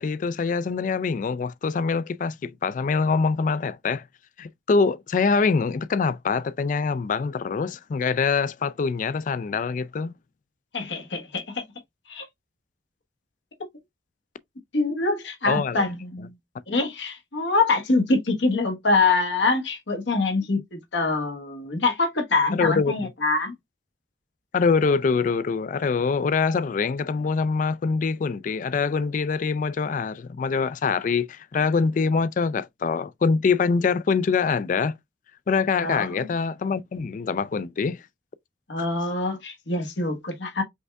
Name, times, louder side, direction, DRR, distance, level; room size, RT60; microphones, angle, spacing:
voice 1, 0.0-4.0 4.4-10.1 15.5-15.9 22.5-23.1 24.5-34.9 35.5-38.0 38.8-38.9, left 5 dB, 45° left, 0.3 m, -24 dB
voice 2, 10.7-11.6 12.1-12.2 14.7-16.3 16.7-23.5 35.8-36.3 38.7-40.6, left 3 dB, 85° left, 1.2 m, -25 dB
5.3 x 3.3 x 2.3 m
head